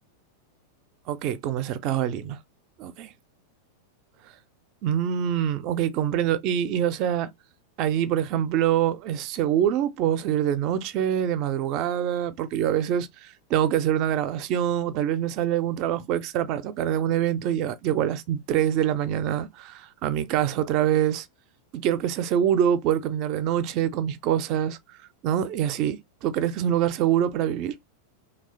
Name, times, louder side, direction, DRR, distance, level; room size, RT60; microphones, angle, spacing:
voice 1, 1.1-2.4 2.8-3.1 4.8-7.3 7.8-21.3 21.7-24.8 25.2-27.8, right 10 dB, 40° right, 0.4 m, -25 dB
3.0 x 2.3 x 3.4 m
figure-of-eight pair, 90°, 0 cm